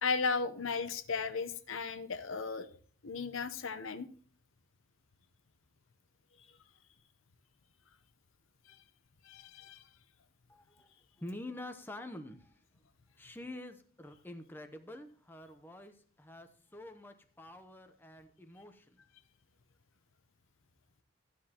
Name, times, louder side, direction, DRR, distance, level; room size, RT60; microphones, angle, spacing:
voice 1, 0.0-2.7 3.0-4.1 9.3-9.8, left 4 dB, 70° left, 10 dB, 0.8 m, -35 dB
voice 2, 10.5-12.5 13.2-19.0, left 1 dB, 10° left, 6 dB, 0.7 m, -47 dB
14.5 x 9.9 x 2.9 m, 0.44 s
head